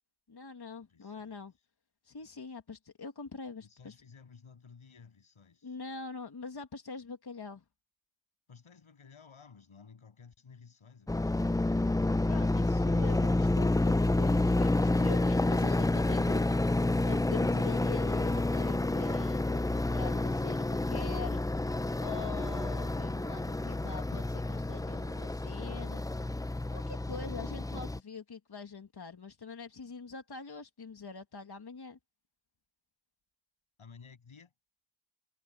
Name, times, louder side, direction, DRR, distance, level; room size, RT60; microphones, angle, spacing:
voice 1, 0.3-1.5 2.0-3.9 5.6-7.6 12.3-21.4 22.0-26.0 26.7-32.0, left 5 dB, 55° left, 2.0 m, -44 dB
voice 2, 0.9-1.4 3.6-5.8 8.5-11.9 33.8-34.5, left 5 dB, 85° left, 7.5 m, -55 dB
sound 1, 11.1-28.0, left 2 dB, 10° left, 0.4 m, -29 dB
wide cardioid pair, 70°, 47 cm